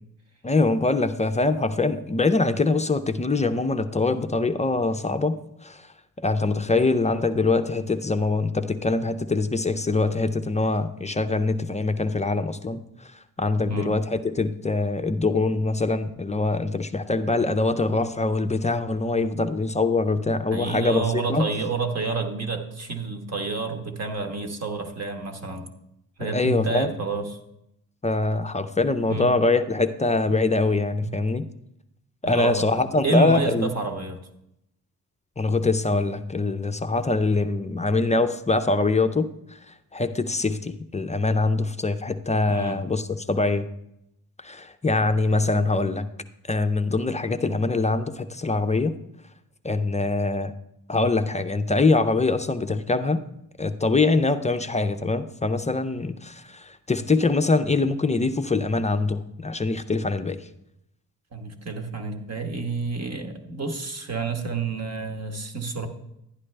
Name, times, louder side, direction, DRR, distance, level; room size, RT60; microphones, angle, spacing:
voice 1, 0.4-5.4 5.6-5.9 6.2-12.8 13.4-21.5 26.2-26.9 28.0-31.4 32.2-33.7 35.4-43.7 44.4-46.1 46.5-48.9 49.6-50.5 50.9-53.2 53.6-60.4, left 3 dB, 20° left, 9 dB, 0.4 m, -23 dB
voice 2, 20.5-25.7 26.2-27.4 29.1-29.3 31.0-31.2 32.2-32.7 33.0-34.2 42.5-42.8 61.3-65.9, right 3 dB, 45° right, 5 dB, 1.3 m, -29 dB
11.5 x 9.9 x 3.3 m, 0.82 s
cardioid pair, 105°, 37 cm